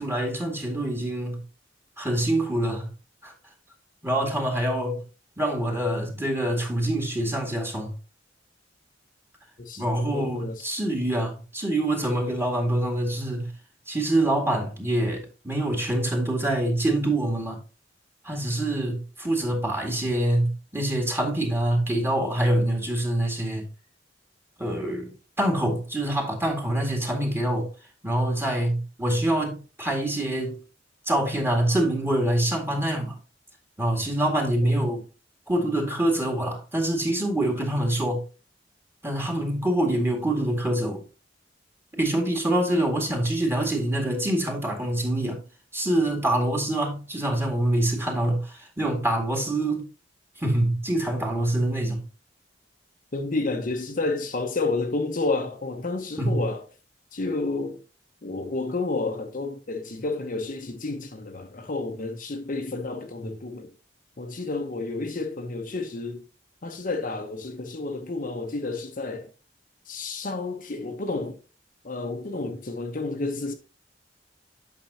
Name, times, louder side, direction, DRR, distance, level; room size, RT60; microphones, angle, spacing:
voice 1, 0.0-1.4 2.0-2.9 3.2-3.3 4.0-5.0 5.4-7.9 9.8-13.5 13.9-17.6 18.2-23.6 24.6-27.7 28.0-30.6 31.1-33.2 33.8-35.0 35.5-38.2 39.0-41.0 41.9-45.4 45.7-49.9 50.4-52.0 56.2-56.4, right 1 dB, 15° right, 1.9 m, -25 dB
voice 2, 9.6-10.7 34.6-34.8 53.1-56.6 57.1-57.8 58.2-63.7 64.2-66.2 66.6-69.3 69.9-71.4 71.8-73.5, left 3 dB, 50° left, 0.9 m, -30 dB
9.0 x 6.0 x 2.8 m
head